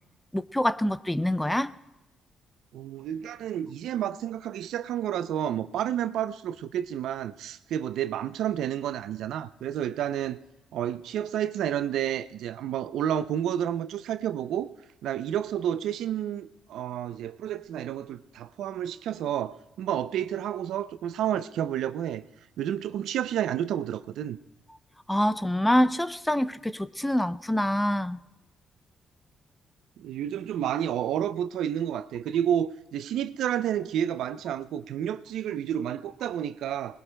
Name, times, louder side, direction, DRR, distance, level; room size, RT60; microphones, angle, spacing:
voice 1, 0.3-1.7 25.1-28.2, left 1 dB, 10° left, 0.5 m, -25 dB
voice 2, 2.7-10.4 10.7-14.7 15.0-22.2 22.6-24.4 30.0-37.0, right 10 dB, 80° right, 0.5 m, -30 dB
27.0 x 20.5 x 2.2 m
cardioid pair, 90°, 0 cm